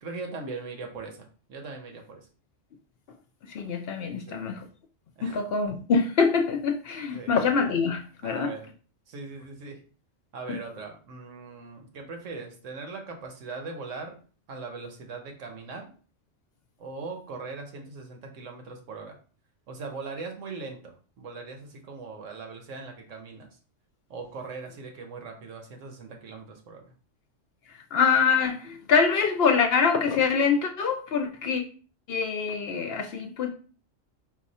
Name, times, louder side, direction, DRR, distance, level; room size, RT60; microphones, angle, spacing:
voice 1, 0.0-2.2 4.3-4.4 5.2-5.4 7.1-7.3 8.2-8.7 9.1-9.8 10.3-14.2 14.5-15.9 16.8-19.2 19.7-23.5 24.1-26.8, right 4 dB, 80° right, 3 dB, 1.3 m, -40 dB
voice 2, 3.4-4.7 5.2-8.5 10.5-10.6 27.9-31.6 32.1-33.5, left 5 dB, 65° left, 5 dB, 0.7 m, -25 dB
4.6 x 2.3 x 4.1 m, 0.40 s
omnidirectional pair, 1.3 m